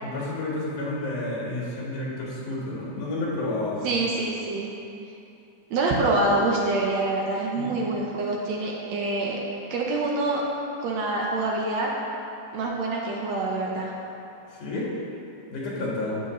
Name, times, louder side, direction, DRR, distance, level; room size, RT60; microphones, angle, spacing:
voice 1, 0.0-3.9 7.5-7.8 14.5-14.9 15.5-16.2, left 2 dB, 80° left, -5 dB, 3.3 m, -30 dB
voice 2, 3.8-4.7 5.7-9.4 9.7-10.4 10.8-11.9 12.5-13.9, right 2 dB, 70° right, -2 dB, 1.9 m, -26 dB
11.0 x 8.3 x 3.1 m, 2.7 s
omnidirectional pair, 3.5 m